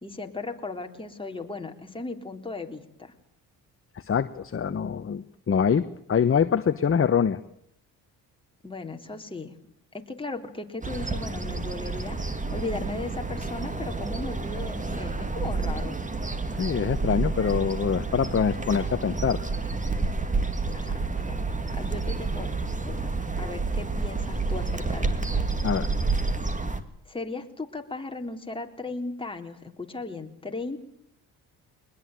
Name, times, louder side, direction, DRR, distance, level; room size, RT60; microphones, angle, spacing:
voice 1, 0.0-3.1 8.6-9.6 9.9-16.0 20.7-21.3 21.7-22.5 22.8-25.4 27.1-30.8, left 3 dB, 15° left, 3 dB, 3.7 m, -36 dB
voice 2, 3.9-7.4 16.6-19.4 25.6-25.9, left 7 dB, 35° left, 11 dB, 1.2 m, -24 dB
sound 1, 10.8-26.8, right 3 dB, 20° right, 2.4 m, -29 dB
22.0 x 21.0 x 9.2 m, 0.73 s
cardioid pair, 90°, 38 cm